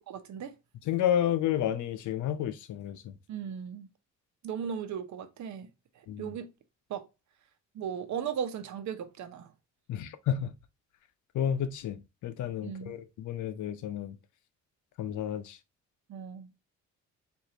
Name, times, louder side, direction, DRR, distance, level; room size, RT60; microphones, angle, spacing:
voice 1, 0.1-0.5 3.3-3.9 4.4-5.7 5.9-6.5 6.9-7.1 7.7-9.5 12.6-13.0 16.1-16.5, right 8 dB, 70° right, 0.9 m, -37 dB
voice 2, 0.9-3.1 6.1-6.3 9.9-10.5 11.3-14.2 15.0-15.6, left 10 dB, 75° left, 0.7 m, -31 dB
4.9 x 2.6 x 2.8 m
cardioid pair, 90°, 30 cm